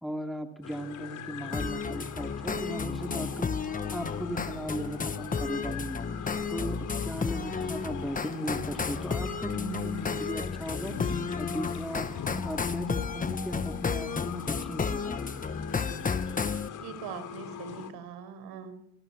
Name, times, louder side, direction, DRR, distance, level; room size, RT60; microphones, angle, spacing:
voice 1, 0.0-3.5 3.9-6.1 6.5-11.0 11.4-12.1 12.4-15.4, equal, ahead, 4 dB, 2.4 m, -37 dB
sound 1, 0.6-17.9, left 7 dB, 50° left, 3.6 m, -42 dB
sound 2, 1.5-16.7, left 5 dB, 20° left, 1.2 m, -33 dB
voice 2, 16.8-18.7, right 7 dB, 75° right, 12 dB, 5.2 m, -42 dB
27.5 x 26.5 x 6.0 m, 0.75 s
cardioid pair, 105°, 38 cm